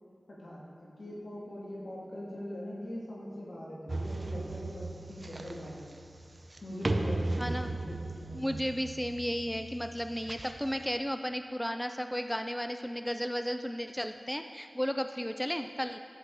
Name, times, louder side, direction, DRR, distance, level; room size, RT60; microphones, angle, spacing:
voice 1, 0.3-5.8 6.6-8.6, equal, 80° left, -6 dB, 2.6 m, -42 dB
sound 1, 3.9-10.9, right 2 dB, 45° right, 0.7 m, -37 dB
voice 2, 7.4-7.8 8.3-16.0, equal, 5° left, 7 dB, 0.4 m, -34 dB
13.5 x 7.8 x 4.1 m, 2.4 s
wide cardioid pair, 65°, 0 cm